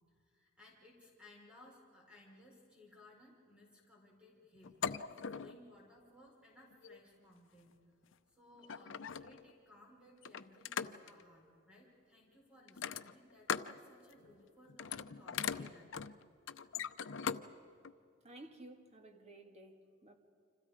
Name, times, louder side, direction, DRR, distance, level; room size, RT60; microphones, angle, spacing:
voice 1, 0.1-4.8 5.3-7.8 8.3-15.9, left 1 dB, 5° right, -2 dB, 4.6 m, -61 dB
sound 1, 4.6-5.6 6.7-7.0 8.1-8.2 8.6-9.5 10.2-11.2 12.7-13.8 14.1-14.4 14.7-17.5 17.8-17.9, left 7 dB, 70° left, 0.6 m, -40 dB
voice 2, 18.2-20.2, right 1 dB, 35° right, 5 dB, 2.0 m, -54 dB
29.5 x 26.5 x 5.0 m, 2.6 s
head